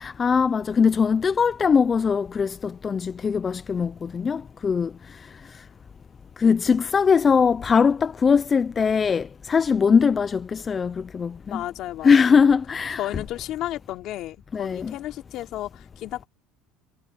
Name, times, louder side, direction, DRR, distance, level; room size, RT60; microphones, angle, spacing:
voice 1, 0.0-5.6 6.4-11.6 12.0-13.1 14.5-14.9, left 6 dB, 25° left, 0.5 m, -21 dB
voice 2, 11.5-12.2 12.9-16.3, left 14 dB, 50° left, 3.4 m, -33 dB
cardioid pair, 130°, 0 cm